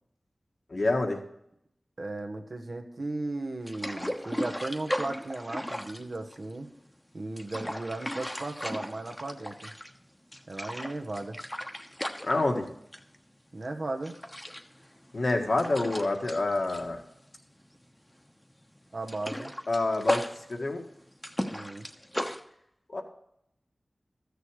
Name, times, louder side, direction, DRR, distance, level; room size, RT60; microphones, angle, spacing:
voice 1, 0.7-1.2 12.2-12.7 15.1-17.0 19.7-20.2 20.5-20.8 22.9-23.0, left 2 dB, 65° left, 3 dB, 1.7 m, -27 dB
voice 2, 2.0-6.7 7.1-9.7 10.5-11.4 13.5-14.2 18.9-19.5 21.5-21.9, right 2 dB, 65° right, 4 dB, 1.3 m, -36 dB
sound 1, 3.7-6.7 7.2-10.0 10.3-13.2 13.5-13.7 14.0-17.8 18.1-18.3 18.6-22.4, equal, 15° left, 1.1 m, -36 dB
13.5 x 6.8 x 4.9 m, 0.75 s
cardioid pair, 45°, 0 cm